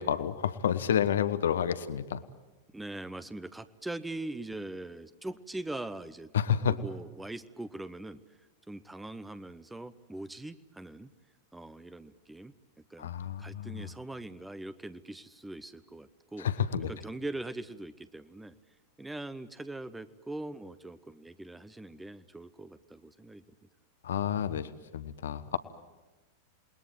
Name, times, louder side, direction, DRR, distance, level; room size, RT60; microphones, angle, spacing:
voice 1, 0.0-2.2 6.3-6.8 13.0-13.9 16.4-16.9 24.0-25.6, left 8 dB, 65° left, 13 dB, 1.0 m, -30 dB
voice 2, 2.7-6.3 6.6-8.2 8.7-11.1 11.5-12.5 12.9-13.1 13.4-16.5 16.9-18.5 19.0-23.4, right 2 dB, 5° right, 14 dB, 0.9 m, -41 dB
28.5 x 20.5 x 9.4 m, 1.2 s
figure-of-eight pair, 90°, 0 cm